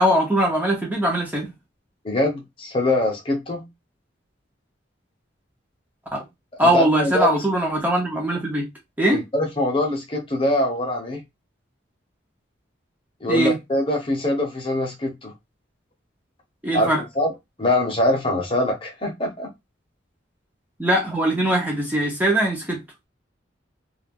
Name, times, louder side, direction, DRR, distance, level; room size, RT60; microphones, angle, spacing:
voice 1, 0.0-1.5 6.1-6.2 6.6-8.7 9.0-9.2 13.3-13.6 16.6-17.0 20.8-22.8, right 1 dB, 10° right, 0.7 m, -21 dB
voice 2, 2.0-3.7 6.5-7.3 9.1-11.2 13.2-15.3 16.7-16.9 17.1-17.3 17.6-19.5, left 1 dB, 30° left, 0.8 m, -23 dB
2.5 x 2.4 x 3.5 m
head